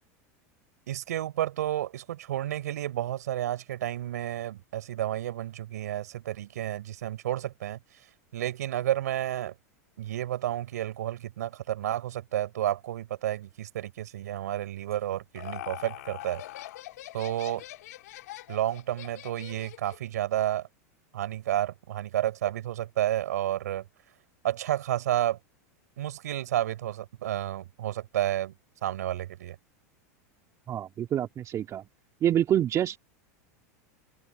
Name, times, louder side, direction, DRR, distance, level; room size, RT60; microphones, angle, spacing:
voice 1, 0.9-7.8 8.3-9.5 10.0-16.4 17.1-17.6 18.5-20.7 21.1-23.8 24.4-25.4 26.0-28.5 28.8-29.6, right 12 dB, 80° right, 4.4 m, -31 dB
Laughter, 14.9-20.1, left 15 dB, 75° left, 2.4 m, -43 dB
voice 2, 30.7-31.8 32.2-33.0, right 10 dB, 35° right, 2.4 m, -26 dB
open air
hypercardioid pair, 105°, 9 cm